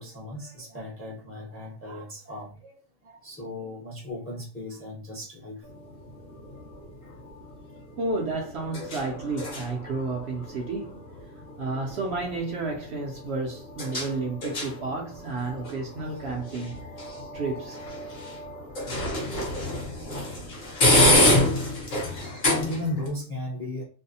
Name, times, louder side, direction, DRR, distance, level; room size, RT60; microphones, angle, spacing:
voice 1, 0.0-2.7 3.0-5.6 22.5-23.8, left 1 dB, 15° left, 0.5 m, -36 dB
sound 1, 5.6-23.1, left 1 dB, 45° left, 0.8 m, -28 dB
voice 2, 8.0-11.0 11.6-16.8 17.3-17.8, right 3 dB, 65° right, 0.8 m, -31 dB
2.6 x 2.0 x 2.7 m
omnidirectional pair, 1.4 m